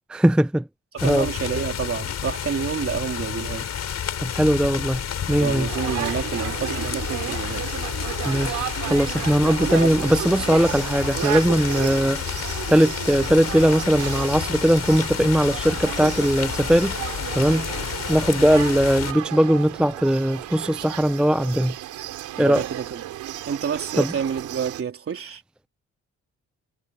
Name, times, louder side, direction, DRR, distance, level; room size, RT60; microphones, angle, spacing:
voice 1, 0.1-0.6 1.0-1.3 4.2-5.0 5.3-5.7 8.2-17.0 17.3-17.7 18.1-21.8 22.4-22.6 24.0-24.1, equal, 5° right, 0.5 m, -20 dB
voice 2, 0.9-3.7 5.4-7.7 9.6-10.0 22.4-23.0 23.5-25.4, right 7 dB, 45° right, 3.8 m, -28 dB
sound 1, 1.0-19.1, left 8 dB, 60° left, 4.6 m, -30 dB
sound 2, 5.7-24.8, right 14 dB, 90° right, 3.0 m, -33 dB
cardioid pair, 90°, 30 cm